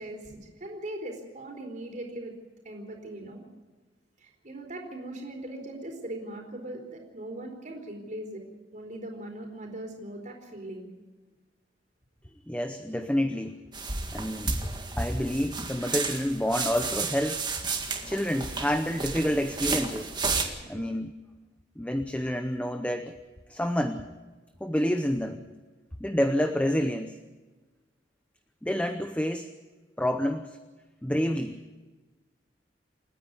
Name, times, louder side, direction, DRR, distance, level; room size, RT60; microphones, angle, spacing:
voice 1, 0.0-2.3 2.6-3.4 4.2-8.4 8.7-10.9 20.7-20.9, right 1 dB, 45° right, 2 dB, 4.4 m, -40 dB
voice 2, 12.5-13.6 14.1-14.6 15.0-17.5 18.1-20.1 20.7-21.1 21.8-23.1 23.5-24.1 24.6-25.4 26.0-27.2 28.6-29.5 30.0-30.6 31.0-31.6, equal, 5° left, 8 dB, 0.7 m, -28 dB
sound 1, 13.7-20.4, right 4 dB, 25° right, 2.0 m, -32 dB
29.0 x 9.9 x 9.6 m, 1.3 s
head